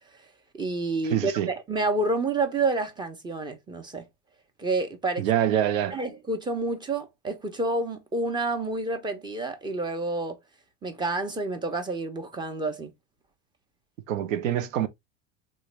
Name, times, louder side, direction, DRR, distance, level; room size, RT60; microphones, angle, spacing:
voice 1, 0.5-4.0 4.6-5.3 5.9-10.4 10.8-12.9, right 2 dB, 10° right, 0.4 m, -29 dB
voice 2, 1.1-1.5 5.2-6.0 14.1-14.9, right 11 dB, 90° right, 0.6 m, -25 dB
3.1 x 2.2 x 2.9 m
supercardioid pair, 110°, 38 cm